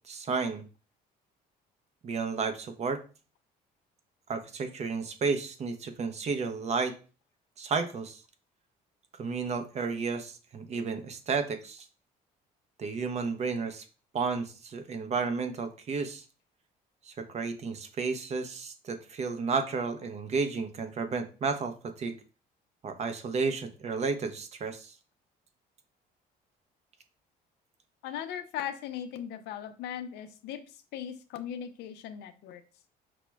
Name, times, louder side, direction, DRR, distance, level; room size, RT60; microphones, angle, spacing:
voice 1, 0.1-0.6 2.0-3.0 4.3-7.0 7.6-8.2 9.2-11.9 12.8-13.9 14.1-16.2 17.1-22.2 22.8-24.9, right 4 dB, 40° right, 8 dB, 0.6 m, -32 dB
voice 2, 28.0-32.6, left 9 dB, 85° left, 9 dB, 0.5 m, -38 dB
5.8 x 2.1 x 2.2 m, 0.36 s
cardioid pair, 110°, 17 cm